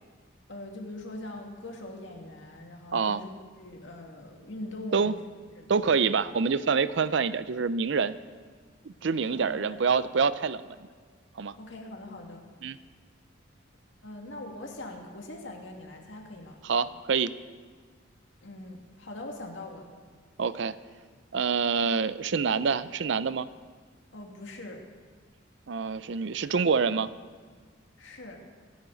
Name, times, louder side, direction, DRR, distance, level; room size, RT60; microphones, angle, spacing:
voice 1, 0.5-3.3 3.6-5.1 5.6-6.0 9.3-9.8 11.6-12.4 14.0-16.6 18.4-19.9 24.1-24.8 28.0-28.4, left 1 dB, 70° left, 1 dB, 2.2 m, -42 dB
voice 2, 5.7-8.2 8.8-10.6 11.4-11.5 12.6-12.8 16.6-17.3 20.4-20.7 21.3-23.5 25.7-27.1, right 5 dB, 65° right, 15 dB, 0.5 m, -26 dB
25.0 x 10.5 x 4.0 m, 1.6 s
head